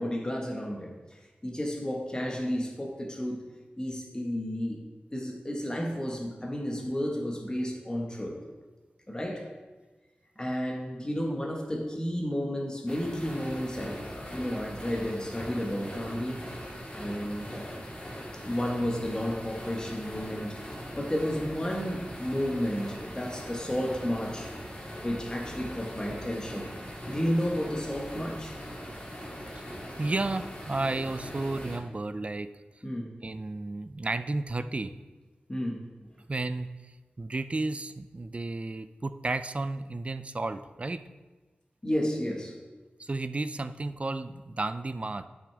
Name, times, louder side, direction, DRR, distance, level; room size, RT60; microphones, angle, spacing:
voice 1, 0.0-3.5 3.8-4.8 5.1-8.4 9.1-9.5 10.4-16.6 16.9-17.8 18.4-24.5 25.0-26.8 27.1-28.6 32.8-33.2 35.5-35.9 41.8-42.6, equal, 20° left, -1 dB, 1.4 m, -32 dB
sound 1, 12.9-31.8, equal, 35° left, 2.6 m, -41 dB
voice 2, 29.5-32.5 33.2-34.9 36.3-36.7 37.2-41.0 43.0-45.3, right 2 dB, 35° right, 11 dB, 0.4 m, -32 dB
9.9 x 6.1 x 3.4 m, 1.3 s
cardioid pair, 55°, 4 cm